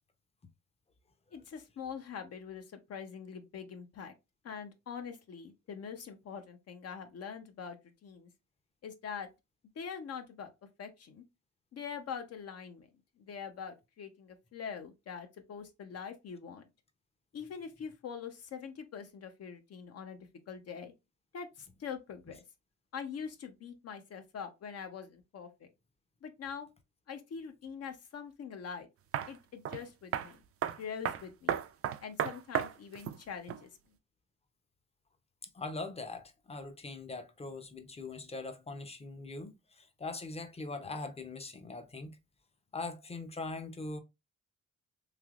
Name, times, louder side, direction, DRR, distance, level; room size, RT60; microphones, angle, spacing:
voice 1, 1.3-4.1 4.4-8.3 8.8-9.3 9.7-10.5 10.8-11.2 11.7-12.9 13.2-16.7 17.3-20.2 20.5-20.9 21.3-22.4 22.9-25.7 26.2-26.7 27.1-28.9 29.3-30.4 30.8-31.6 32.0-33.7, left 6 dB, 55° left, 0.7 m, -44 dB
sound 1, 29.1-29.3 29.6-29.8 30.1-30.3 30.6-30.8 31.0-33.2 33.5-33.6, right 9 dB, 50° right, 0.5 m, -33 dB
voice 2, 35.5-42.2 42.7-44.0, left 3 dB, 20° left, 0.7 m, -41 dB
3.3 x 2.8 x 2.4 m
cardioid pair, 90°, 30 cm